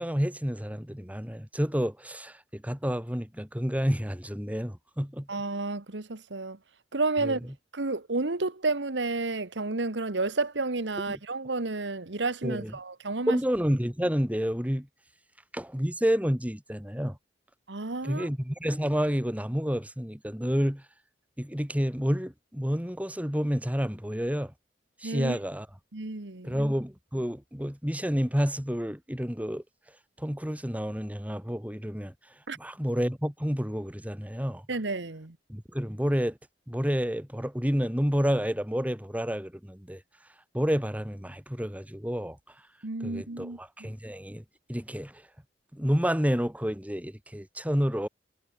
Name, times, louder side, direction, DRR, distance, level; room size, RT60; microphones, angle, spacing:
voice 1, 0.0-5.3 7.2-7.4 11.1-11.2 12.4-12.7 13.3-14.9 15.5-17.2 18.0-20.8 21.4-24.5 25.0-25.7 26.4-29.6 30.2-32.1 32.5-34.6 35.5-36.4 36.7-40.0 40.5-42.4 43.0-44.4 44.7-45.3 45.7-48.1, equal, 10° right, 3.1 m, -29 dB
voice 2, 5.3-6.6 6.9-7.4 7.7-13.4 17.7-18.3 25.0-25.4 25.9-26.6 32.5-32.6 34.7-35.3 42.8-43.9, right 3 dB, 90° right, 1.5 m, -31 dB
head